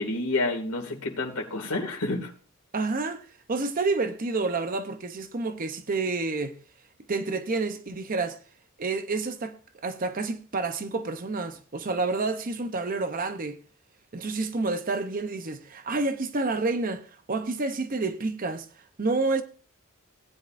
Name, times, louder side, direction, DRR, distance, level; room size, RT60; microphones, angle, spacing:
voice 1, 0.0-2.3, left 2 dB, 85° left, 2.3 m, -29 dB
voice 2, 2.7-6.6 7.1-8.4 8.8-9.6 9.8-13.6 14.1-18.7 19.0-19.4, right 3 dB, 40° right, 0.7 m, -29 dB
17.0 x 9.9 x 2.5 m
head